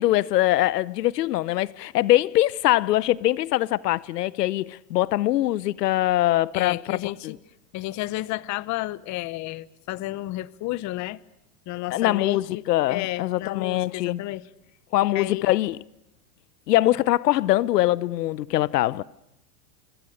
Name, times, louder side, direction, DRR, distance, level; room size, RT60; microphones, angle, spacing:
voice 1, 0.0-7.3 11.9-14.2 14.9-15.8 16.7-19.0, left 15 dB, 85° left, 0.9 m, -23 dB
voice 2, 6.5-7.4 7.7-11.2 11.7-14.4 15.1-15.4, left 17 dB, 40° left, 1.0 m, -32 dB
28.0 x 25.5 x 6.6 m
hypercardioid pair, 120°, 47 cm